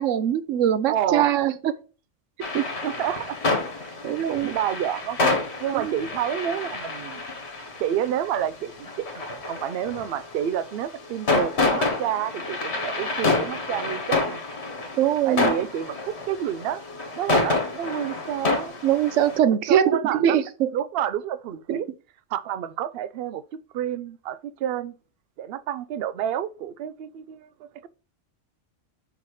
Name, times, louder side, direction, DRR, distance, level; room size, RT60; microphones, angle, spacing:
voice 1, 0.0-1.7 2.5-2.7 4.0-4.5 5.7-5.9 15.0-15.5 18.8-20.7 21.7-21.8, right 10 dB, 80° right, 1.0 m, -22 dB
voice 2, 0.9-1.4 2.8-3.4 3.8-5.3 5.6-7.2 7.8-14.4 15.2-16.8 17.2-18.8 19.7-20.4 20.7-21.9 22.3-24.9 25.4-27.9, right 10 dB, 65° right, 0.7 m, -29 dB
sound 1, 2.4-19.4, left 3 dB, 60° left, 1.6 m, -28 dB
5.7 x 4.1 x 4.8 m
omnidirectional pair, 1.3 m